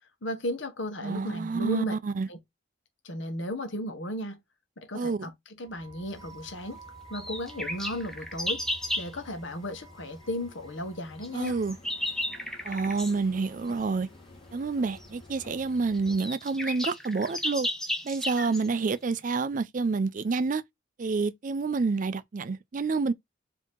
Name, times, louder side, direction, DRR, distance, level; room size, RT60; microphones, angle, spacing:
voice 1, 0.2-2.0 2.3-2.4 3.0-4.4 4.8-5.3 5.6-6.8 7.1-8.6 9.0-11.5, equal, 70° left, 1.2 m, -35 dB
voice 2, 1.0-2.3 4.9-5.2 11.3-11.8 12.6-14.1 14.5-17.7 18.0-20.6 21.0-23.1, right 4 dB, 40° right, 0.4 m, -28 dB
sound 1, 5.6-16.2, equal, 25° left, 1.6 m, -50 dB
sound 2, 7.1-9.1 11.2-13.2 15.0-15.1 15.7-15.8 15.9-18.7, left 1 dB, ahead, 0.6 m, -33 dB
4.8 x 2.8 x 3.6 m
head